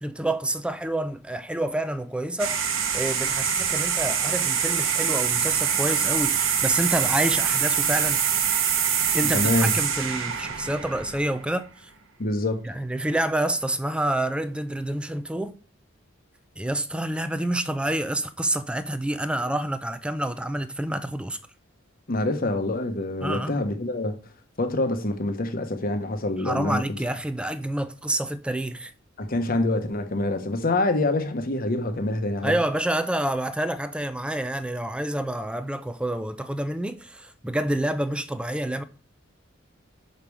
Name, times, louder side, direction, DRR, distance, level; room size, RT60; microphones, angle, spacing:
voice 1, 0.0-8.2 9.1-11.9 12.6-15.6 16.6-21.4 23.2-23.6 26.4-28.9 32.4-38.8, right 1 dB, 5° right, 0.4 m, -28 dB
sound 1, 2.4-11.6, right 7 dB, 75° right, 1.0 m, -24 dB
voice 2, 9.3-9.7 12.2-12.6 22.1-24.2 24.6-26.8 29.2-32.5, left 2 dB, 45° left, 1.0 m, -26 dB
5.7 x 5.3 x 4.7 m
head